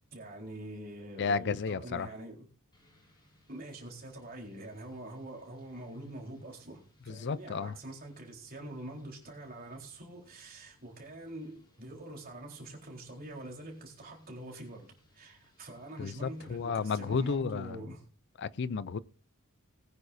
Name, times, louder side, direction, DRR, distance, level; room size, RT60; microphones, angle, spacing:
voice 1, 0.1-2.5 3.5-18.0, right 1 dB, 45° right, 4.0 m, -45 dB
voice 2, 1.2-2.1 7.1-7.7 16.0-17.8 18.4-19.0, left 5 dB, 55° left, 0.4 m, -32 dB
sound 1, 2.7-17.4, left 1 dB, 20° left, 6.1 m, -67 dB
20.5 x 9.5 x 2.7 m
head